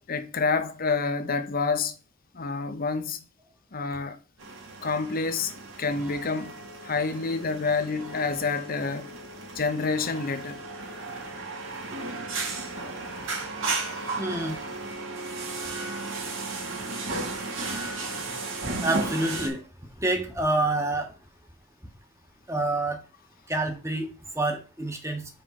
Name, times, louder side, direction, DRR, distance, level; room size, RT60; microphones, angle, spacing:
voice 1, 0.1-2.0 2.3-3.2 3.7-4.2 4.8-5.5 5.8-6.5 6.8-9.1 9.5-10.6, left 4 dB, 45° left, 0.8 m, -28 dB
sound 1, 4.4-19.5, right 3 dB, 70° right, 2.1 m, -34 dB
voice 2, 14.2-14.6 18.8-19.6 20.0-21.1 22.5-23.0 23.5-24.1 24.3-25.2, right 2 dB, 15° right, 1.2 m, -27 dB
5.1 x 4.5 x 5.8 m
head